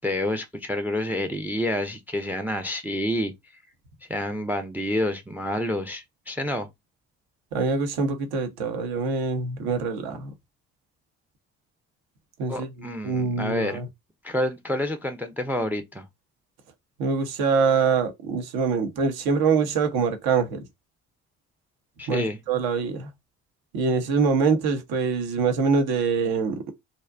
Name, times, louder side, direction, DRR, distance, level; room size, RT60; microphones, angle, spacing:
voice 1, 0.0-3.3 4.1-6.7 12.5-13.8 14.2-16.0 22.0-22.4, left 1 dB, 5° right, 0.3 m, -28 dB
voice 2, 7.5-10.3 12.4-12.7 13.0-13.9 17.0-20.6 22.1-23.1 23.7-26.7, right 5 dB, 70° right, 0.8 m, -24 dB
2.6 x 2.1 x 2.3 m
hypercardioid pair, 50°, 39 cm